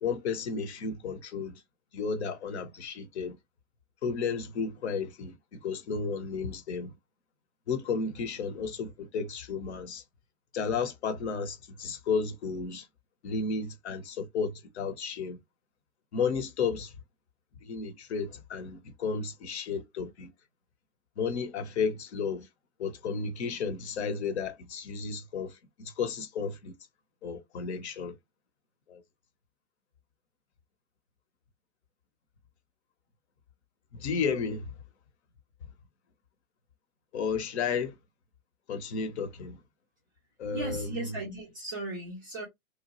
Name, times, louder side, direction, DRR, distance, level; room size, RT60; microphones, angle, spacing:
voice 1, 0.0-1.6 1.9-3.4 4.0-6.9 7.7-10.0 10.5-12.9 13.2-15.4 16.1-16.9 17.6-20.3 21.2-22.5 22.8-25.6 25.8-26.7 27.2-28.1 28.9-29.0 33.9-34.7 37.1-38.0 38.7-39.6 40.4-41.1, left 5 dB, 50° left, 0.8 m, -33 dB
voice 2, 40.5-42.5, right 2 dB, 15° right, 0.4 m, -37 dB
2.9 x 2.1 x 2.9 m
hypercardioid pair, 125°, 41 cm